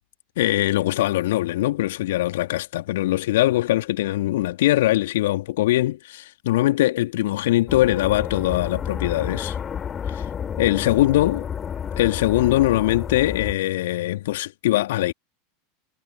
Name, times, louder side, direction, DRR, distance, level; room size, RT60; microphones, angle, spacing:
voice 1, 0.4-9.6 10.1-10.3 10.6-11.5 12.0-15.1, left 15 dB, 60° left, 2.1 m, -22 dB
sound 1, 7.7-13.5, left 7 dB, 25° left, 3.3 m, -31 dB
figure-of-eight pair, 85°, 0 cm